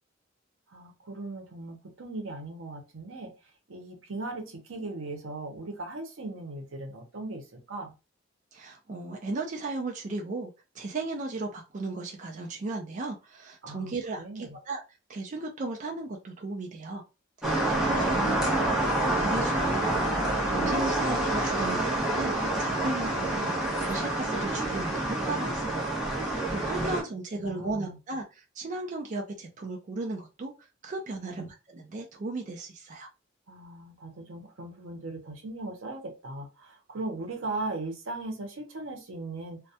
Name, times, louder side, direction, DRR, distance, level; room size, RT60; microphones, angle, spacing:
voice 1, 0.7-7.9 13.6-14.6 23.3-23.6 26.7-26.9 27.4-28.0 31.2-31.5 33.5-39.6, right 2 dB, 85° right, 4 dB, 0.7 m, -39 dB
voice 2, 8.5-14.8 15.1-17.0 17.4-18.0 19.2-19.9 20.3-23.5 23.9-25.9 26.2-30.5 30.8-33.1, right 2 dB, 40° right, 1 dB, 0.4 m, -36 dB
sound 1, 17.4-27.0, right 1 dB, 5° right, 0.7 m, -27 dB
2.2 x 2.1 x 2.7 m, 0.29 s
head